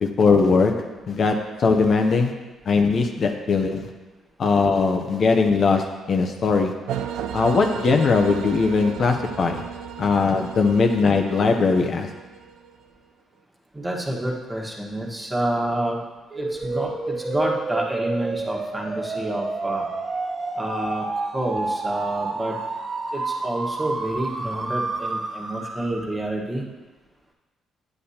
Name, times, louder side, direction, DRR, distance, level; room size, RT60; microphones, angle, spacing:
voice 1, 0.0-2.3 2.7-4.0 4.4-6.8 7.3-9.6 10.0-12.1, left 4 dB, 55° left, 4 dB, 0.7 m, -20 dB
sound 1, 6.9-12.9, right 8 dB, 90° right, 0.4 m, -35 dB
voice 2, 13.7-16.0 16.3-19.8 20.6-22.6 23.1-26.6, right 1 dB, 15° right, -2 dB, 1.4 m, -28 dB
sound 2, 16.3-26.2, right 3 dB, 35° right, 0.8 m, -29 dB
8.7 x 8.0 x 2.8 m, 1.2 s
cardioid pair, 90°, 0 cm